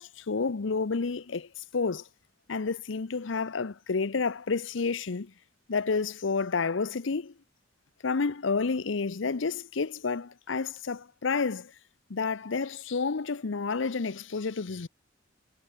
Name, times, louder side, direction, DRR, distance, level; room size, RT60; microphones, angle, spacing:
voice 1, 0.0-2.1 2.5-5.3 5.7-7.3 8.0-11.7 12.1-14.9, left 4 dB, 70° left, 0.7 m, -30 dB
head